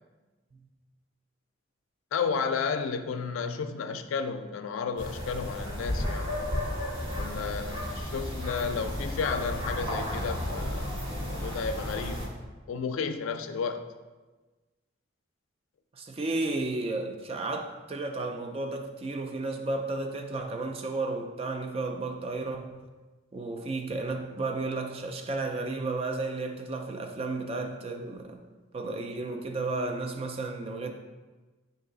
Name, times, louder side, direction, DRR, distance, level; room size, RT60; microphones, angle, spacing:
voice 1, 2.1-6.4 7.2-12.2 12.7-13.8, left 5 dB, 90° left, 0.3 m, -32 dB
sound 1, 5.0-12.3, left 1 dB, 75° right, 1.4 m, -33 dB
voice 2, 16.0-22.8 23.3-28.4 28.7-30.9, right 2 dB, 30° right, 0.3 m, -33 dB
4.6 x 2.7 x 3.8 m
head